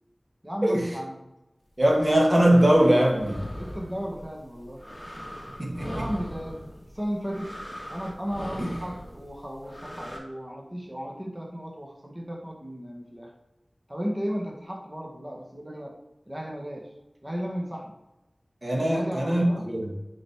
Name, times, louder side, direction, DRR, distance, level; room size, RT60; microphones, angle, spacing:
voice 1, 0.4-1.2 3.5-4.9 5.8-7.6 7.9-13.3 13.9-16.0 16.3-16.9 17.2-17.9 18.8-19.7, equal, 20° right, 0 dB, 1.8 m, -35 dB
sound 1, 1.8-10.2, equal, 15° left, 2.1 m, -40 dB
voice 2, 1.8-3.4 5.6-6.1 8.6-8.7 18.6-19.9, right 1 dB, 45° right, -2 dB, 2.2 m, -21 dB
9.1 x 5.2 x 4.8 m, 0.96 s
wide cardioid pair, 55°, 0 cm